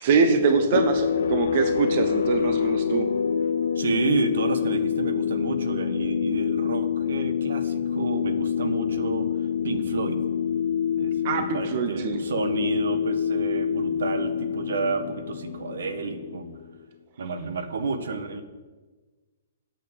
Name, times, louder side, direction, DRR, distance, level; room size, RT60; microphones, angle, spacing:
voice 1, 0.0-3.1 11.2-12.2, right 5 dB, 35° right, 8 dB, 0.8 m, -23 dB
sound 1, 0.6-16.9, left 7 dB, 80° left, 0.7 m, -26 dB
voice 2, 3.7-9.3 9.6-10.2 11.0-16.5 17.2-18.4, right 4 dB, 75° right, 9 dB, 1.2 m, -30 dB
9.2 x 7.2 x 8.0 m, 1.3 s
hypercardioid pair, 175°, 0 cm